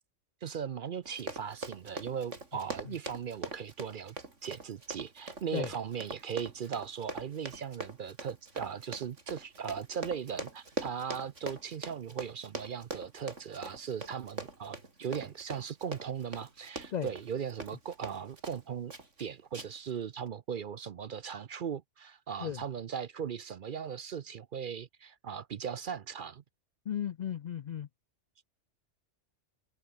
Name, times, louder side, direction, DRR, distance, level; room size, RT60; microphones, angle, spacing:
voice 1, 0.4-4.2 4.4-18.9 19.2-26.4, right 7 dB, 55° right, 0.7 m, -38 dB
Run, 1.0-18.6 18.9-19.2 19.5-19.9 20.3-20.4, right 2 dB, 80° right, 4.1 m, -42 dB
voice 2, 26.9-27.9, left 9 dB, 65° left, 0.4 m, -35 dB
omnidirectional pair, 1.2 m